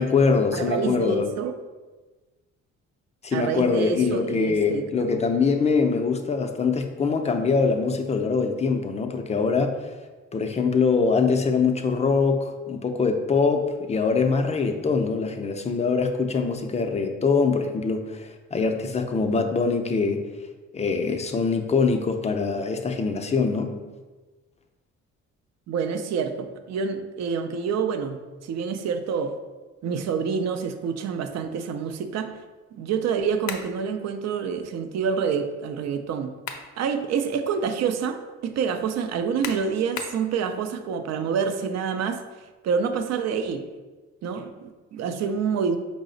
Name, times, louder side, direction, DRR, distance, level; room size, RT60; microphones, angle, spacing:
voice 1, 0.0-1.3 3.2-9.7 10.3-20.2 20.7-23.7, left 4 dB, 25° left, 5 dB, 0.4 m, -23 dB
voice 2, 0.5-1.5 3.3-4.8 5.1-5.2 25.7-28.2 28.4-29.3 29.8-32.3 32.8-36.3 36.8-42.3 42.6-43.6 44.2-45.8, right 6 dB, 60° right, 8 dB, 0.4 m, -27 dB
sound 1, 33.5-33.8 36.1-36.7 37.2-37.3 39.4-40.2, left 6 dB, 70° left, 0.5 m, -35 dB
4.7 x 2.1 x 3.8 m, 1.3 s
cardioid pair, 90°, 30 cm